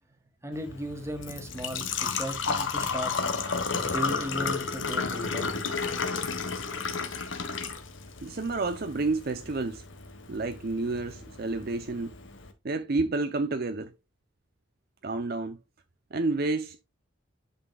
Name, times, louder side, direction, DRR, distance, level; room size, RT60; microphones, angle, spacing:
voice 1, 0.4-3.1 3.8-5.6, equal, 15° right, 1.6 m, -36 dB
Engine / Trickle dribble / Fill (with liquid), 0.5-12.5, left 5 dB, 85° left, 1.4 m, -33 dB
voice 2, 8.2-9.8 10.3-12.2 12.6-13.9 15.0-15.6 16.1-16.8, right 3 dB, 50° right, 0.6 m, -30 dB
10.0 x 5.7 x 2.3 m
head